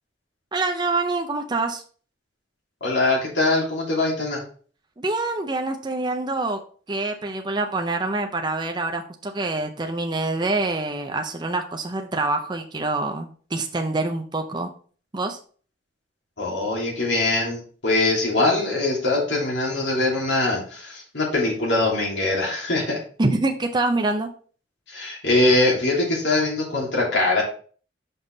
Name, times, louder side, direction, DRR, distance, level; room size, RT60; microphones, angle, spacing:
voice 1, 0.5-1.8 5.0-6.6 6.9-14.7 15.1-15.4 23.2-24.3, right 2 dB, 25° right, 4 dB, 0.5 m, -25 dB
voice 2, 2.8-4.4 16.4-23.0 24.9-27.4, left 2 dB, 65° left, -3 dB, 2.9 m, -22 dB
5.7 x 5.4 x 3.9 m, 0.43 s
head